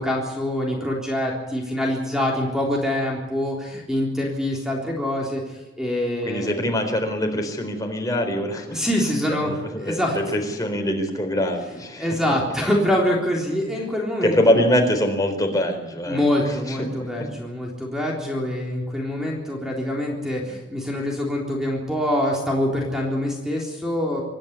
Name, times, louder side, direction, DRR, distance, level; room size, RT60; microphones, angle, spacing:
voice 1, 0.0-6.5 8.7-9.5 9.8-10.2 12.0-14.4 16.1-24.2, left 1 dB, 5° right, -1 dB, 3.7 m, -25 dB
voice 2, 6.2-8.8 9.3-12.1 14.2-17.3, left 1 dB, 20° left, 3 dB, 4.2 m, -24 dB
26.0 x 10.5 x 9.5 m, 1.1 s
head